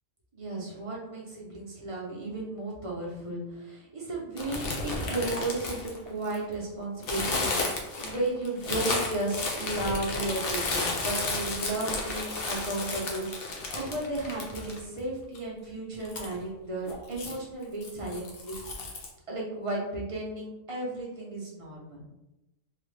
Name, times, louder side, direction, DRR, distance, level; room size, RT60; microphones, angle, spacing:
voice 1, 0.3-19.0 19.3-22.1, right 2 dB, 30° right, -4 dB, 0.7 m, -34 dB
sound 1, 4.4-6.5 7.0-15.0 15.3-15.4 16.0-16.3 16.8-17.4 17.8-19.1, left 3 dB, 55° left, 0.8 m, -33 dB
3.2 x 2.4 x 3.2 m, 0.97 s
omnidirectional pair, 1.3 m